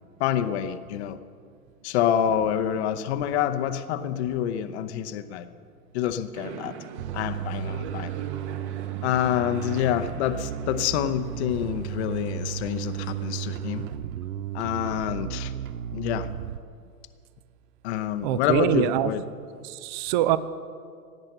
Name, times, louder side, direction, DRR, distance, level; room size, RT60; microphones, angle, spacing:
voice 1, 0.2-1.2 1.8-5.5 5.9-6.7 7.1-8.1 9.0-13.9 14.5-15.5 15.9-16.3 17.8-19.2, left 10 dB, 45° left, 10 dB, 0.8 m, -27 dB
sound 1, 6.3-14.0, right 7 dB, 50° right, 1.3 m, -42 dB
Bass guitar, 7.0-16.6, right 10 dB, 65° right, 0.7 m, -34 dB
voice 2, 18.2-19.1 19.6-20.4, right 13 dB, 30° right, 15 dB, 0.5 m, -24 dB
17.0 x 8.8 x 6.6 m, 2.2 s
hypercardioid pair, 110°, 44 cm